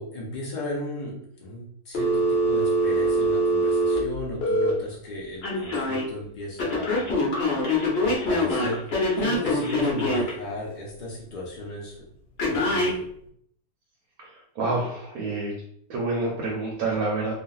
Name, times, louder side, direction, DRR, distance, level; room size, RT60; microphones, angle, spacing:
voice 1, 0.0-7.2 8.0-12.0 12.4-13.0, left 1 dB, 80° left, -5 dB, 0.4 m, -35 dB
Telephone, 1.9-4.7 5.4-6.0 6.6-10.3 12.4-12.9, equal, 50° left, 0.8 m, -23 dB
voice 2, 14.6-15.5 15.9-17.3, right 3 dB, 70° right, -2 dB, 1.1 m, -27 dB
2.9 x 2.5 x 2.3 m, 0.69 s
omnidirectional pair, 1.7 m